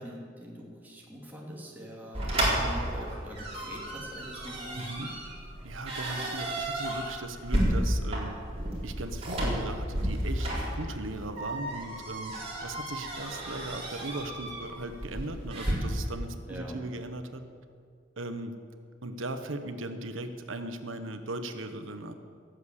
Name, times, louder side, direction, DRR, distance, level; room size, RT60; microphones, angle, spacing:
voice 1, 0.0-5.1 16.5-16.8, equal, 10° right, -3 dB, 2.6 m, -43 dB
sound 1, 2.1-15.7, right 1 dB, 30° right, 3.8 m, -32 dB
voice 2, 4.7-5.1 5.6-8.4 8.8-12.3 12.6-17.4 18.2-18.6 19.0-22.1, right 2 dB, 80° right, 8 dB, 1.1 m, -38 dB
17.5 x 8.1 x 8.3 m, 2.2 s
head